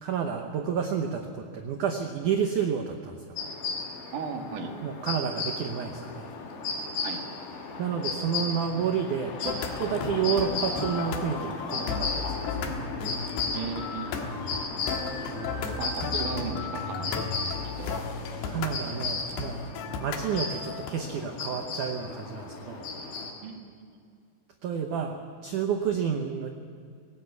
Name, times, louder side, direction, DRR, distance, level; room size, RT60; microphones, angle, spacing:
voice 1, 0.0-3.2 4.8-6.3 7.8-12.8 15.3-15.6 16.1-16.3 18.5-19.7 20.0-22.8 24.6-26.5, right 7 dB, 85° right, 4 dB, 1.7 m, -30 dB
sound 1, 3.4-23.3, left 4 dB, 85° left, 4.9 m, -35 dB
voice 2, 4.1-4.7 7.0-7.2 13.5-14.2 15.8-18.0 23.4-24.0, right 5 dB, 55° right, 3 dB, 3.0 m, -37 dB
sound 2, 9.5-20.9, left 5 dB, 70° left, 3.5 m, -35 dB
19.0 x 18.0 x 8.2 m, 2.3 s
omnidirectional pair, 5.2 m